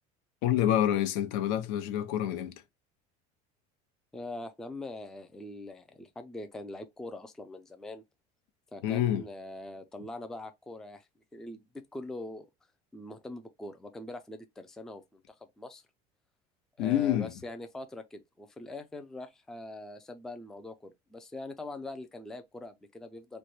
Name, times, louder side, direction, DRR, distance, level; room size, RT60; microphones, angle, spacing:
voice 1, 0.4-2.6 8.8-9.2 16.8-17.3, left 11 dB, 80° left, 0.7 m, -27 dB
voice 2, 4.1-8.0 8.7-11.6 11.9-12.5 12.9-15.8 16.8-23.4, left 2 dB, 5° left, 0.3 m, -43 dB
3.1 x 2.2 x 4.2 m
cardioid pair, 150°, 19 cm